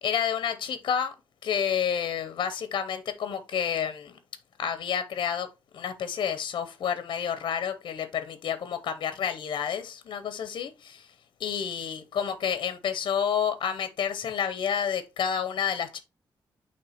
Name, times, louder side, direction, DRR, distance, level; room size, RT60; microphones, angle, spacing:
voice 1, 0.0-1.1 1.4-4.2 4.6-5.5 5.7-11.1 11.4-16.0, left 8 dB, 65° left, 0.7 m, -29 dB
8.7 x 3.2 x 4.2 m
wide cardioid pair, 175°, 8 cm